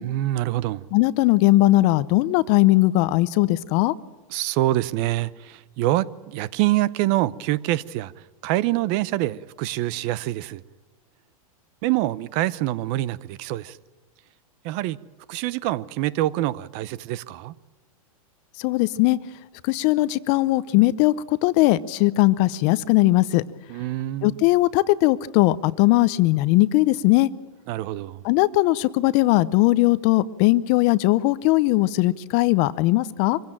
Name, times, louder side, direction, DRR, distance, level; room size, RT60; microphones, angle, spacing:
voice 1, 0.0-0.8 4.3-8.1 8.4-10.6 11.8-13.8 14.6-15.0 15.3-17.5 23.7-24.4 27.7-28.2, right 15 dB, 45° right, 0.7 m, -25 dB
voice 2, 0.9-3.9 18.6-19.2 19.6-21.1 21.4-23.4 24.2-27.3 28.2-33.4, left 18 dB, 40° left, 0.7 m, -19 dB
24.5 x 16.0 x 8.9 m
hypercardioid pair, 135°, 18 cm